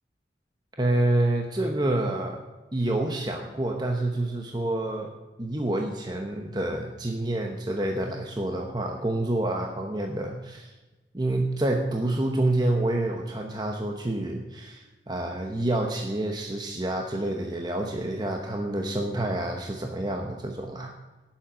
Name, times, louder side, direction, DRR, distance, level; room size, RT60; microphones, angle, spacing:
voice 1, 0.8-2.5 2.7-5.1 5.4-10.7 11.1-20.9, right 1 dB, 25° right, 2 dB, 0.9 m, -28 dB
17.5 x 7.4 x 5.1 m, 1.2 s
head